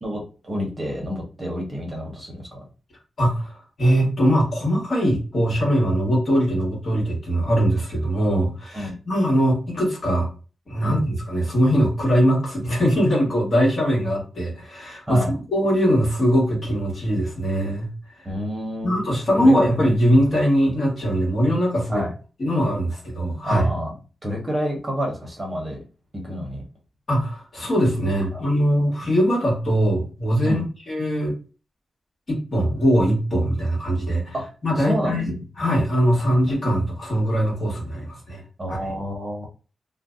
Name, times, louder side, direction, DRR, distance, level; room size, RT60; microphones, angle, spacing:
voice 1, 0.0-2.6 8.7-9.0 10.8-11.0 15.1-15.3 18.2-18.9 19.4-19.5 21.9-22.1 23.4-23.9 24.2-25.8 26.1-26.6 28.3-28.4 28.7-28.9 30.4-30.7 34.3-34.5 34.7-35.2 36.2-36.3 38.6-39.5, equal, 20° right, -1 dB, 0.9 m, -29 dB
voice 2, 3.2-3.5 3.8-10.3 10.7-18.2 18.8-22.0 22.4-23.7 27.1-31.3 32.3-34.3 34.6-38.4 38.7-38.9, equal, 40° left, -3 dB, 1.4 m, -21 dB
2.5 x 2.1 x 3.6 m, 0.35 s
wide cardioid pair, 170°, 0 cm